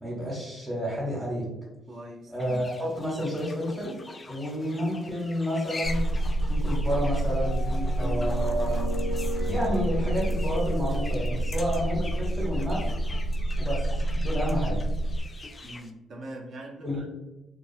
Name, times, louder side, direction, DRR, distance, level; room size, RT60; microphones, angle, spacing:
voice 1, 0.0-1.5 2.3-4.0 4.3-6.0 6.5-8.8 9.5-12.9 13.6-13.8 14.1-14.8 16.8-17.1, equal, 15° right, -5 dB, 0.9 m, -30 dB
voice 2, 1.9-2.7 15.6-17.1, right 1 dB, 55° right, 0 dB, 0.6 m, -42 dB
sound 1, 2.4-15.9, left 3 dB, 30° left, 0.3 m, -44 dB
sound 2, 5.8-15.2, right 1 dB, 85° left, 0.5 m, -28 dB
sound 3, 7.3-12.5, equal, 85° right, 1.0 m, -38 dB
2.4 x 2.3 x 2.6 m, 1.0 s
cardioid pair, 90°, 0 cm